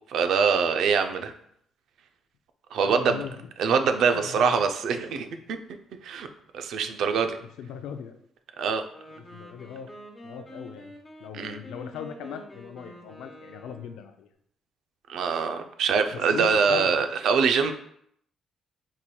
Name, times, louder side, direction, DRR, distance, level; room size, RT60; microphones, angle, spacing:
voice 1, 0.1-1.3 2.7-3.2 3.6-5.6 6.0-6.3 6.5-7.4 8.6-8.8 11.3-11.6 15.1-17.7, right 6 dB, 75° right, 7 dB, 0.4 m, -24 dB
voice 2, 2.8-3.5 4.1-4.7 7.4-8.1 9.1-9.9 10.2-10.9 11.2-14.3 16.1-16.9, left 8 dB, 85° left, 7 dB, 0.4 m, -39 dB
Wind instrument woodwind instrument, 8.9-14.1, equal, 15° left, 1.0 m, -47 dB
4.7 x 4.2 x 2.3 m, 0.68 s
cardioid pair, 90°, 0 cm